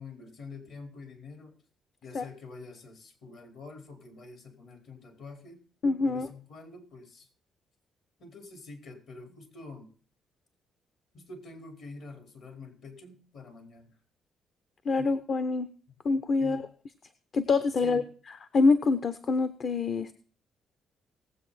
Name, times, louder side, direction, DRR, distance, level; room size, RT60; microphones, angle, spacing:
voice 1, 0.0-1.6 2.0-5.6 6.0-7.3 8.2-9.9 11.1-14.0 15.0-15.1 16.4-16.7 17.8-18.1, left 3 dB, 65° left, 5 dB, 4.7 m, -46 dB
voice 2, 5.8-6.3 14.8-15.7 16.0-16.6 17.3-18.0 18.5-20.1, left 4 dB, 50° left, 12 dB, 0.9 m, -25 dB
19.0 x 8.2 x 4.3 m, 0.43 s
cardioid pair, 90°, 0 cm